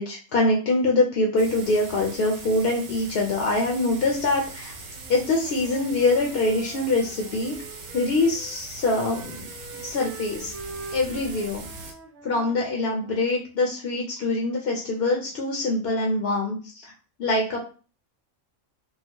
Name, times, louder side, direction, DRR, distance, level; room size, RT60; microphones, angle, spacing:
voice 1, 0.0-4.7 5.1-7.5 7.9-10.5 10.9-11.7 12.2-16.9 17.2-17.6, left 2 dB, 55° left, 0 dB, 0.7 m, -24 dB
sound 1, 1.4-11.9, right 3 dB, 60° right, 0.5 m, -41 dB
Wind instrument woodwind instrument, 4.9-8.6 8.9-13.3, right 3 dB, 80° right, 1.1 m, -44 dB
4.0 x 2.1 x 2.9 m, 0.37 s
omnidirectional pair, 1.5 m